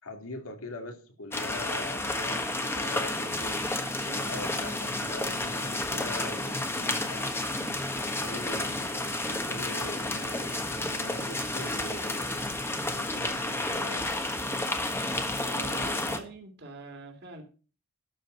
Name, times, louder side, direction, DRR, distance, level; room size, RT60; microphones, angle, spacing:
voice 1, 0.0-7.4 7.9-12.4 12.7-14.3, left 2 dB, 90° left, 5 dB, 2.6 m, -42 dB
sound 1, 1.3-16.2, left 2 dB, 10° left, 1.4 m, -31 dB
voice 2, 15.4-17.4, right 2 dB, 50° right, 3 dB, 2.5 m, -43 dB
12.5 x 5.1 x 7.8 m, 0.37 s
head